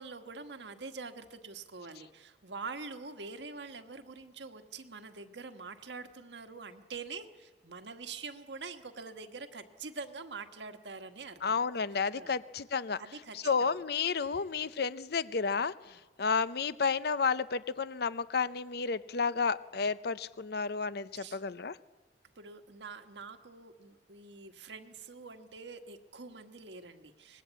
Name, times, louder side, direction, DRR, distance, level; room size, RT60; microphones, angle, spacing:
voice 1, 0.0-11.5 12.1-12.4 13.0-13.7 14.6-14.7 15.9-16.0 21.1-21.4 22.3-27.4, right 4 dB, 85° right, 7 dB, 1.5 m, -45 dB
voice 2, 11.4-13.0 13.3-21.8, left 5 dB, 60° left, 15 dB, 0.7 m, -31 dB
25.5 x 20.0 x 8.2 m, 1.3 s
head